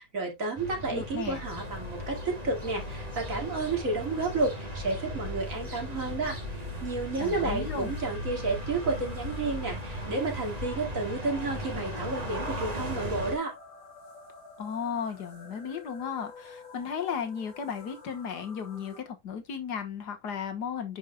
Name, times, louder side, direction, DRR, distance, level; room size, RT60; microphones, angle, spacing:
voice 1, 0.0-13.5, right 3 dB, 50° right, 2.7 m, -31 dB
sound 1, 0.6-13.4, equal, 25° right, 2.1 m, -37 dB
voice 2, 0.9-1.4 7.2-7.9 14.6-21.0, left 7 dB, 80° left, 1.9 m, -35 dB
sound 2, 1.3-19.0, left 3 dB, 55° left, 3.0 m, -49 dB
10.0 x 5.2 x 2.3 m
omnidirectional pair, 1.8 m